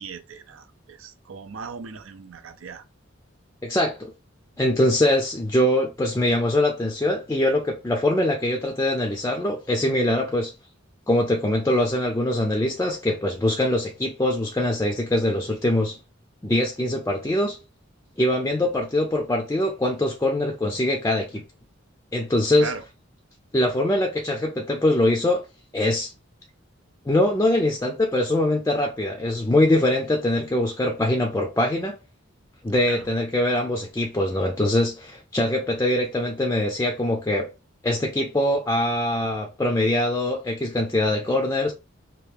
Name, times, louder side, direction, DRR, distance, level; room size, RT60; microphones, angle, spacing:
voice 1, 0.0-2.8 22.5-22.8 32.9-33.1, right 5 dB, 85° right, 0.5 m, -38 dB
voice 2, 3.6-4.1 4.6-10.5 11.1-16.0 16.4-17.6 18.2-21.4 22.1-22.7 23.5-25.5 25.7-26.1 27.1-32.0 32.6-37.5 37.8-41.7, left 1 dB, 15° left, 0.4 m, -23 dB
2.8 x 2.4 x 3.4 m
head